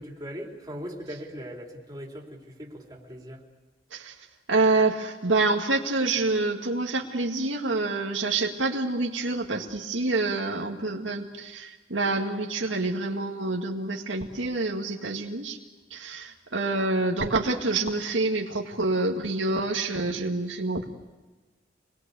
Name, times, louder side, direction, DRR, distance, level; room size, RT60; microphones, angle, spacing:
voice 1, 0.0-3.4, equal, 20° right, -1 dB, 3.8 m, -39 dB
voice 2, 4.5-15.6 15.9-20.9, right 3 dB, 80° right, 1 dB, 2.0 m, -27 dB
27.0 x 21.0 x 8.3 m, 1.3 s
head